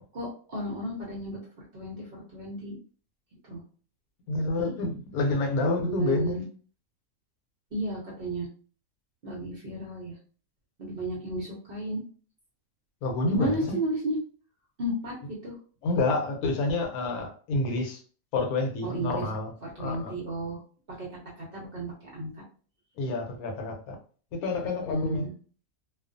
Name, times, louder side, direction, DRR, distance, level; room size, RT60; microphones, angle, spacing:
voice 1, 0.1-2.7 3.5-3.6 4.3-4.7 5.8-6.4 7.7-8.5 9.2-10.1 10.8-12.0 13.2-14.2 14.8-15.2 15.4-15.6 18.8-19.3 19.8-20.6 20.9-21.1 21.4-22.4 24.9-25.3, right 1 dB, 50° right, 0.7 m, -33 dB
voice 2, 4.3-6.3 13.0-13.8 15.8-18.0 18.3-19.5 19.8-20.1 23.0-24.0 24.4-25.3, left 2 dB, 75° left, 1.1 m, -28 dB
2.4 x 2.3 x 2.5 m
omnidirectional pair, 1.6 m